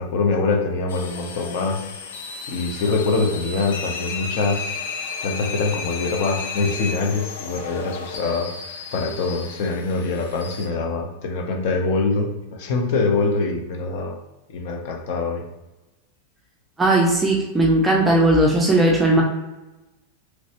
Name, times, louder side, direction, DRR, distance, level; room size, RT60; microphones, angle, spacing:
voice 1, 0.0-1.8 2.5-4.7 5.2-8.5 8.9-14.2 14.5-15.4, left 3 dB, 50° left, 3 dB, 0.7 m, -24 dB
sound 1, 0.9-10.7, left 5 dB, 85° left, 0.6 m, -33 dB
voice 2, 16.8-19.2, right 1 dB, 10° right, -1 dB, 0.5 m, -17 dB
3.2 x 3.0 x 2.8 m, 1.0 s
supercardioid pair, 170°, 0 cm